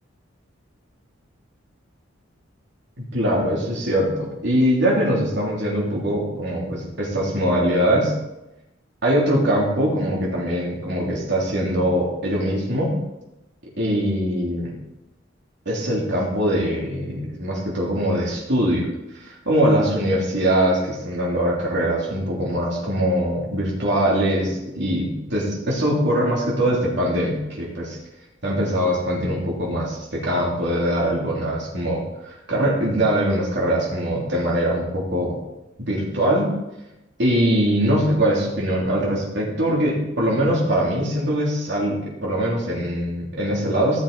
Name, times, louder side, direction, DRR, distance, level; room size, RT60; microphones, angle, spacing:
voice 1, 3.0-8.1 9.0-13.0 13.8-14.7 15.6-18.9 19.2-28.0 28.4-35.4 35.8-36.5 37.2-44.0, equal, 60° right, -4 dB, 3.2 m, -22 dB
15.0 x 7.3 x 4.2 m, 0.92 s
head